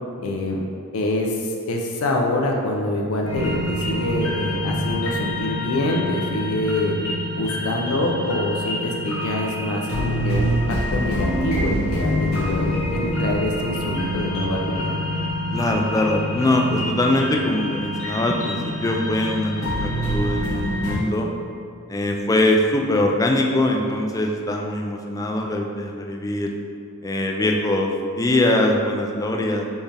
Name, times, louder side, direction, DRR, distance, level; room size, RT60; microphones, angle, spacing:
voice 1, 0.2-0.6 0.9-7.0 7.4-14.9, left 1 dB, 85° left, 1 dB, 0.5 m, -25 dB
sound 1, 3.2-21.0, equal, 70° left, 1.3 m, -26 dB
voice 2, 15.5-21.3 21.9-26.5 27.0-29.6, left 1 dB, 15° left, 1 dB, 0.3 m, -22 dB
4.3 x 3.4 x 3.4 m, 2.4 s
head